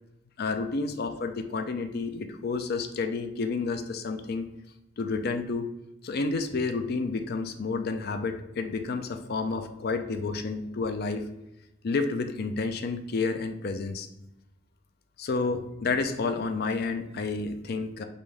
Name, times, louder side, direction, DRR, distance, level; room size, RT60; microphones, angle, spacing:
voice 1, 0.4-4.5 5.0-5.6 6.0-11.3 11.8-14.1 15.2-18.0, left 4 dB, 55° left, 7 dB, 0.4 m, -30 dB
5.4 x 2.6 x 3.2 m, 0.90 s
head